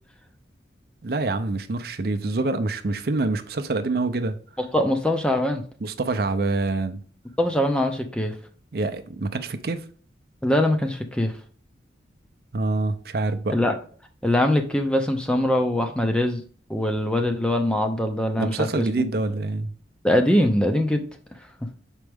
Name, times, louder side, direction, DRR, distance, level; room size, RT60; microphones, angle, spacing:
voice 1, 1.0-4.4 5.8-7.0 8.7-9.8 12.5-13.6 18.4-19.7, right 3 dB, 55° right, 0.5 m, -26 dB
voice 2, 4.6-5.6 7.4-8.3 10.4-11.3 13.5-13.7 14.2-16.4 16.7-18.8 20.0-21.0, left 1 dB, 5° left, 0.5 m, -22 dB
6.2 x 4.5 x 3.5 m
head